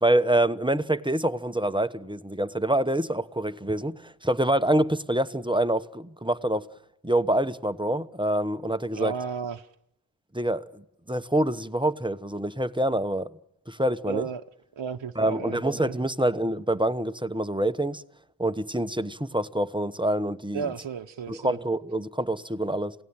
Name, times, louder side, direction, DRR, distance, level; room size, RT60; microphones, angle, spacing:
voice 1, 0.0-6.6 7.0-9.1 10.3-10.8 11.1-13.3 13.7-14.3 15.2-18.0 18.4-20.7 21.3-22.9, right 1 dB, 10° right, 1.1 m, -26 dB
voice 2, 8.9-9.7 14.1-14.4 14.8-16.0 20.5-21.6, right 6 dB, 65° right, 0.9 m, -34 dB
28.0 x 18.0 x 8.8 m
wide cardioid pair, 55°, 48 cm